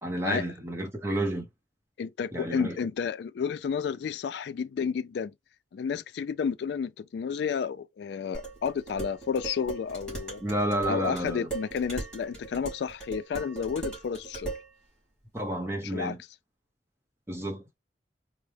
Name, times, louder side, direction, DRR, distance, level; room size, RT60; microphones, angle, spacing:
voice 1, 0.0-1.4 2.3-2.8 10.4-11.5 15.3-16.2 17.3-17.6, right 1 dB, 15° right, 0.8 m, -30 dB
voice 2, 2.0-5.3 5.7-10.4 10.8-14.5 15.8-16.2, left 6 dB, 70° left, 0.3 m, -31 dB
Dishes pots and pans, 8.3-14.7, right 3 dB, 5° left, 2.0 m, -39 dB
4.4 x 2.0 x 3.3 m
head